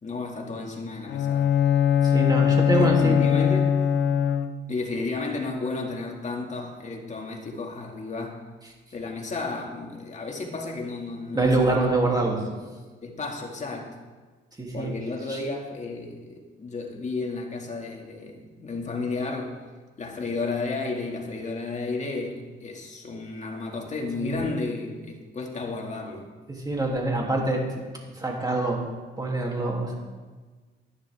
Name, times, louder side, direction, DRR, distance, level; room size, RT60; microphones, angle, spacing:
voice 1, 0.0-1.5 2.7-3.8 4.7-8.4 8.9-11.9 13.0-14.0 14.7-19.6 20.0-26.3, left 3 dB, 35° left, 1 dB, 2.1 m, -32 dB
Bowed string instrument, 1.1-4.8, left 8 dB, 65° left, 0.7 m, -21 dB
voice 2, 2.0-3.2 11.3-12.4 14.6-14.9 15.3-15.4 24.2-24.4 26.5-27.7 28.1-28.8 29.2-29.9, right 2 dB, 20° right, -1 dB, 2.9 m, -25 dB
12.0 x 11.0 x 3.6 m, 1.4 s
cardioid pair, 90°, 20 cm